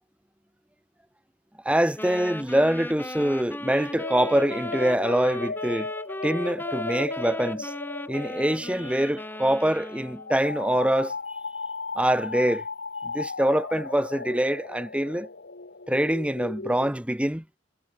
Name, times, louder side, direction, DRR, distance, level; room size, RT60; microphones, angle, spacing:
voice 1, 1.6-5.9 6.2-7.7 8.1-11.1 11.9-12.6 13.1-15.3 15.9-17.4, right 1 dB, 5° right, 1.6 m, -24 dB
sound 1, 2.0-10.3, left 1 dB, 10° left, 1.7 m, -36 dB
sound 2, 3.6-16.9, left 4 dB, 60° left, 1.9 m, -36 dB
head